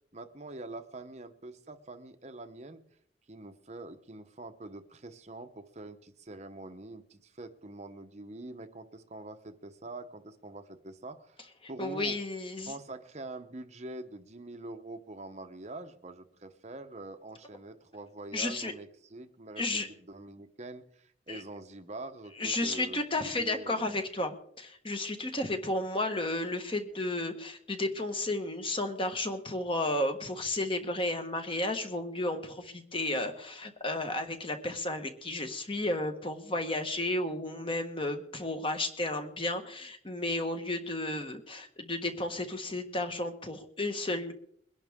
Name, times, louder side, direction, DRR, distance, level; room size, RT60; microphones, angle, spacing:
voice 1, 0.1-2.8 3.3-12.2 12.7-24.0 25.6-25.8, right 2 dB, 35° right, 8 dB, 0.8 m, -45 dB
voice 2, 11.8-12.7 18.3-18.7 19.6-19.9 21.3-21.4 22.4-44.3, left 2 dB, 25° left, 6 dB, 1.3 m, -33 dB
22.0 x 11.0 x 3.6 m, 0.67 s
head